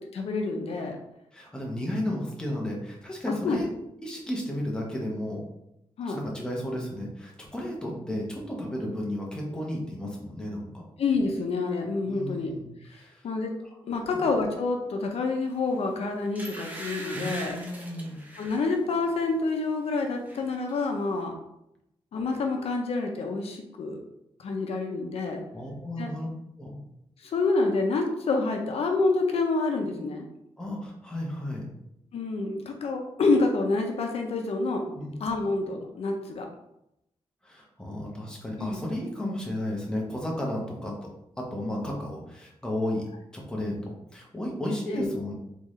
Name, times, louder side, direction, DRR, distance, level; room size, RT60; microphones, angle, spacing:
voice 1, 0.1-1.0 3.4-3.6 6.0-6.2 11.0-12.5 12.9-13.5 13.9-17.5 18.4-21.4 22.1-24.0 24.4-25.4 26.0-26.1 27.2-30.3 32.1-34.8 35.2-36.5 38.6-38.8 44.9-45.1, left 3 dB, 80° left, 3 dB, 0.7 m, -28 dB
voice 2, 1.3-3.7 4.0-5.4 6.0-10.8 12.1-13.3 13.6-13.8 14.1-14.2 17.1-18.2 25.5-26.3 26.6-26.8 30.6-31.7 34.9-35.1 37.4-41.1 41.4-45.3, left 1 dB, 10° left, -2 dB, 1.0 m, -33 dB
sound 1, 15.7-15.8 16.4-18.7 19.1-19.4 19.7-20.4 20.7-20.8, right 1 dB, 15° right, 0.8 m, -40 dB
3.7 x 3.7 x 3.1 m, 0.82 s
wide cardioid pair, 150°, 10 cm